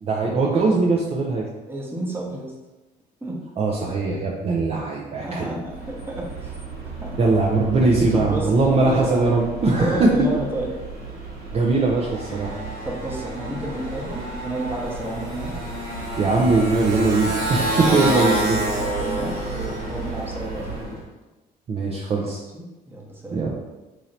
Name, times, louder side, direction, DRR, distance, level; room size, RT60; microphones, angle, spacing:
voice 1, 0.0-1.4 3.6-5.5 7.2-10.1 11.5-12.5 16.2-18.6 21.7-22.4 23.3-23.6, right 3 dB, 35° right, -2 dB, 0.5 m, -21 dB
voice 2, 1.7-2.5 3.2-3.4 5.2-6.6 7.0-7.2 8.1-9.3 9.7-10.7 12.8-15.6 17.8-18.0 18.7-21.0 22.5-23.4, right 1 dB, 10° right, -3 dB, 0.9 m, -31 dB
Motorcycle, 5.6-21.0, right 2 dB, 85° right, 1.4 m, -30 dB
3.1 x 2.8 x 3.9 m, 1.1 s
cardioid pair, 110°, 17 cm